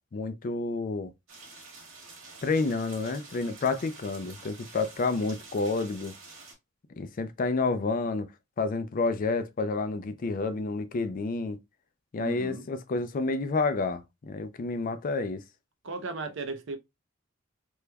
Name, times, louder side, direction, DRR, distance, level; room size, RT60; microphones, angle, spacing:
voice 1, 0.1-1.1 2.4-6.1 7.0-8.3 8.6-11.6 12.1-15.4, left 3 dB, 45° left, 0.4 m, -29 dB
sound 1, 1.3-6.5, right 3 dB, 90° right, 1.5 m, -48 dB
voice 2, 12.2-12.7 15.8-16.8, right 3 dB, 65° right, 0.6 m, -36 dB
3.3 x 3.0 x 2.2 m
head